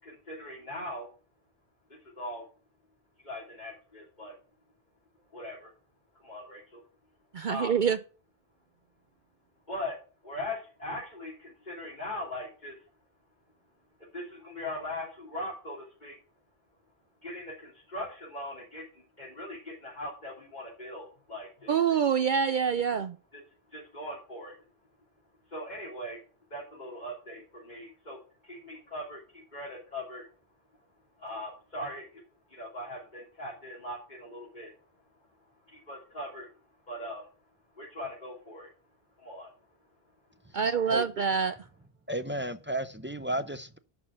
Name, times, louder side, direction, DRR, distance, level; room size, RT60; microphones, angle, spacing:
voice 1, 0.0-1.1 2.2-2.4 3.2-4.3 5.3-5.7 6.2-6.8 7.5-7.7 9.7-9.9 10.2-12.7 14.1-16.1 17.2-18.8 19.2-21.7 23.3-23.4 23.7-24.5 25.5-26.2 26.5-28.2 28.5-30.2 31.2-32.2 32.5-34.7 35.7-36.5 36.9-37.2 37.8-38.7 39.2-39.5, left 1 dB, 45° left, 3.4 m, -40 dB
voice 2, 7.3-8.0 21.7-23.2 40.5-41.6, right 7 dB, 55° right, 0.6 m, -26 dB
voice 3, 42.1-43.8, right 1 dB, 15° right, 0.4 m, -33 dB
11.5 x 4.5 x 7.4 m
omnidirectional pair, 1.1 m